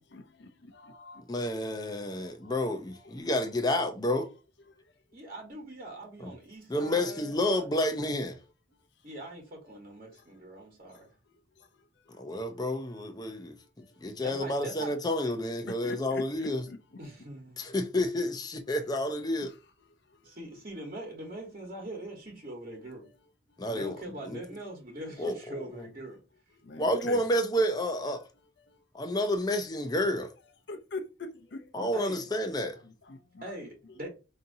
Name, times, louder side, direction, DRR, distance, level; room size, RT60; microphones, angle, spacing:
voice 1, 0.0-1.2 2.0-2.5 12.1-12.2 13.9-14.0 15.6-16.8 20.2-20.3 26.6-27.2 28.7-28.8 30.7-31.7 32.8-33.4, left 2 dB, 65° left, 0.6 m, -43 dB
voice 2, 1.3-4.3 6.2-6.3 6.7-8.4 12.2-13.5 14.0-16.7 17.6-19.5 23.6-24.0 24.2-24.4 25.2-25.7 26.8-28.2 28.9-30.3 31.7-32.8, left 1 dB, 20° left, 0.5 m, -30 dB
voice 3, 5.1-8.0 9.0-11.1 14.2-15.0 17.0-17.6 20.2-23.1 23.7-26.2 31.9-32.2 33.4-34.1, right 1 dB, 40° right, 1.2 m, -42 dB
5.0 x 2.8 x 2.6 m
head